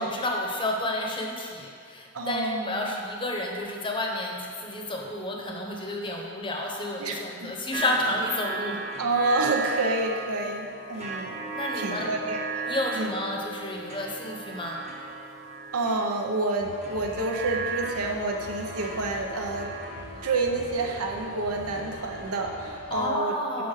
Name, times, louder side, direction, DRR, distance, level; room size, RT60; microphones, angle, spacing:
voice 1, 0.0-8.8 11.0-11.3 11.5-12.2 12.6-14.8 22.9-23.7, left 1 dB, 20° left, 0 dB, 0.8 m, -31 dB
voice 2, 2.1-2.9 7.0-7.5 9.0-11.4 11.7-12.6 13.0-13.1 15.7-19.7 20.2-23.7, right 2 dB, 80° right, 2 dB, 0.8 m, -29 dB
sound 1, 7.7-22.3, right 4 dB, 30° right, 0.9 m, -37 dB
sound 2, 16.6-23.1, left 1 dB, 75° left, 1.1 m, -42 dB
6.7 x 5.2 x 5.8 m, 2.2 s
head